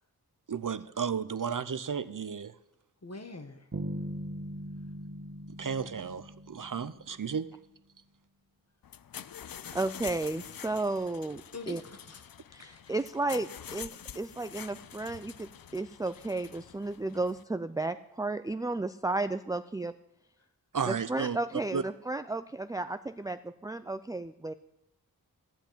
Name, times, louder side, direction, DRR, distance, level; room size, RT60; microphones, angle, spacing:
voice 1, 0.5-2.5 5.6-7.5 20.7-21.4 21.7-21.8, right 6 dB, 55° right, 14 dB, 0.7 m, -33 dB
voice 2, 3.0-3.7 9.6-9.8 11.5-13.0, left 3 dB, 40° left, 7 dB, 1.5 m, -46 dB
Bass guitar, 3.7-7.5, right 1 dB, 40° right, 1.5 m, -40 dB
sound 1, 8.8-17.4, left 9 dB, 65° left, 0.5 m, -46 dB
voice 3, 9.7-11.8 12.5-19.9 20.9-24.5, right 2 dB, 10° right, 11 dB, 0.4 m, -33 dB
14.0 x 5.9 x 8.6 m, 0.82 s
wide cardioid pair, 45°, 37 cm